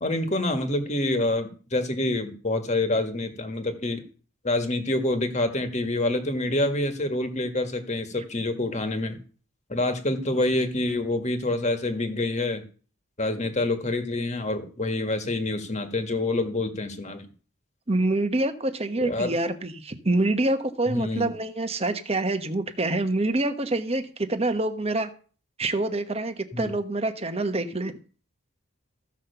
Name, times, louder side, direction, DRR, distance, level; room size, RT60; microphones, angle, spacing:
voice 1, 0.0-4.0 4.4-9.2 9.7-12.6 13.2-17.3 19.0-19.4 20.9-21.3 26.5-26.7, left 2 dB, 35° left, 7 dB, 1.8 m, -27 dB
voice 2, 17.9-25.1 25.6-27.9, right 2 dB, 30° right, 8 dB, 1.1 m, -26 dB
15.0 x 5.8 x 6.9 m, 0.39 s
head